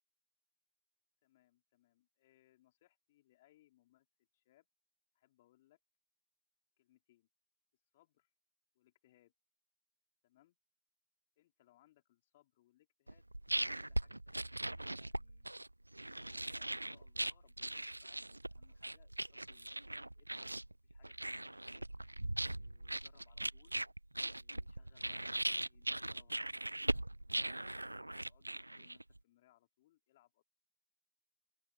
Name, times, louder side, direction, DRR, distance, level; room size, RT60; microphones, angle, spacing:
voice 1, 1.2-4.7 5.1-5.8 6.8-7.3 7.9-8.3 8.7-9.3 10.2-10.6 11.4-15.6 16.1-20.5 20.8-21.9 22.4-23.8 24.2-27.8 28.3-30.4, left 15 dB, 45° left, 4.5 m, -71 dB
sound 1, 13.1-29.2, right 1 dB, 90° right, 0.5 m, -40 dB
open air
figure-of-eight pair, 125°, 0 cm